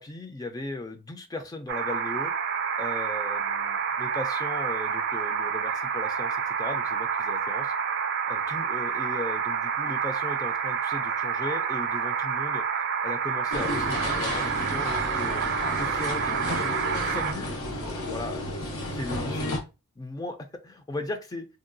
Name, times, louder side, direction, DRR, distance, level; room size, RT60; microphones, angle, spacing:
voice 1, 0.0-2.3 2.8-7.7 8.3-12.6 13.0-15.4 15.8-18.5 18.8-19.6 20.0-21.5, left 2 dB, 15° left, 6 dB, 0.4 m, -37 dB
sound 1, 1.7-17.3, right 6 dB, 50° right, 0.4 m, -28 dB
sound 2, 13.5-19.6, left 1 dB, 85° left, 0.9 m, -32 dB
3.6 x 2.2 x 2.5 m, 0.28 s
head